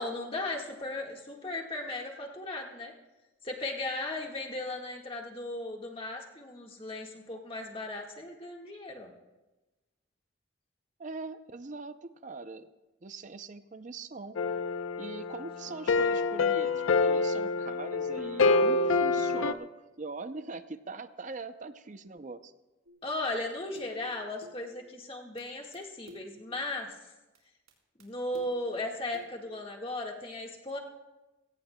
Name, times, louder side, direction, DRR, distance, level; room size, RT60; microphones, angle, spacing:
voice 1, 0.0-2.9 3.4-9.1 23.0-27.1 28.0-30.8, left 2 dB, 25° left, 0 dB, 1.6 m, -36 dB
voice 2, 11.0-12.7 13.0-14.4 15.0-16.7 17.0-19.7 20.0-22.5, right 3 dB, 40° right, 11 dB, 0.5 m, -42 dB
sound 1, 14.4-19.5, left 3 dB, 75° left, 0.6 m, -27 dB
sound 2, 22.9-23.1 23.8-24.1 24.4-24.7 25.4-25.5 25.7-25.8 26.1-26.4 27.3-27.4 27.7-27.8 28.0-28.1 28.3-28.7 29.1-29.4, left 1 dB, 90° right, 3.9 m, -52 dB
21.5 x 17.5 x 2.2 m, 1.1 s
head